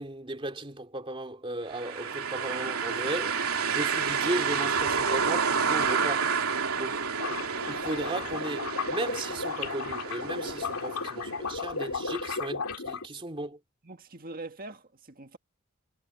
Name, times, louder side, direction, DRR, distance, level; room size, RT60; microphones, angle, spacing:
voice 1, 0.0-3.4 3.7-6.3 6.8-7.1 7.7-13.6, right 1 dB, 25° right, 2.9 m, -36 dB
sound 1, 1.7-11.5, right 5 dB, 75° right, 2.9 m, -30 dB
sound 2, 7.2-13.1, left 4 dB, 80° left, 2.4 m, -34 dB
voice 2, 13.8-15.4, right 2 dB, 40° right, 1.8 m, -43 dB
head